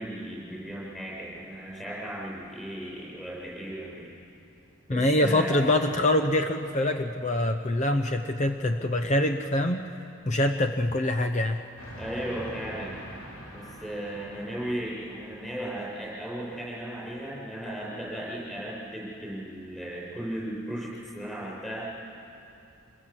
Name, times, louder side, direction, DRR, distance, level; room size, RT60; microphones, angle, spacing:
voice 1, 0.0-4.1 4.9-5.8 12.0-13.0 13.5-21.9, right 1 dB, ahead, -6 dB, 7.5 m, -36 dB
voice 2, 4.9-9.9 10.2-11.6, left 1 dB, 30° left, 6 dB, 0.7 m, -25 dB
Train, 11.8-15.7, equal, 85° left, 6.6 m, -44 dB
26.0 x 22.0 x 7.5 m, 2.7 s
head